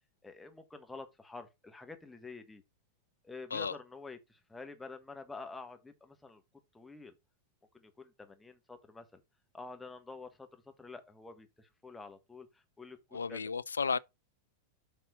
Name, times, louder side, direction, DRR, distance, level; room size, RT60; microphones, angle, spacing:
voice 1, 0.2-2.6 3.2-6.4 6.7-7.1 7.7-9.2 9.5-13.5, left 3 dB, 10° left, 1.4 m, -48 dB
voice 2, 13.1-14.0, left 5 dB, 75° left, 0.4 m, -33 dB
8.0 x 4.2 x 5.0 m
figure-of-eight pair, 90°, 0 cm